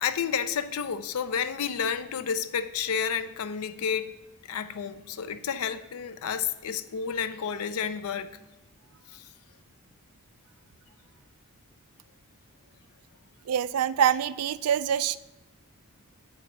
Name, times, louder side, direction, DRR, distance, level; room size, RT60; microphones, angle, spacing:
voice 1, 0.0-4.2 4.4-8.3 9.1-9.3, left 7 dB, 75° left, 0.5 m, -30 dB
voice 2, 13.5-15.2, right 9 dB, 80° right, 0.3 m, -25 dB
6.8 x 4.5 x 6.5 m
head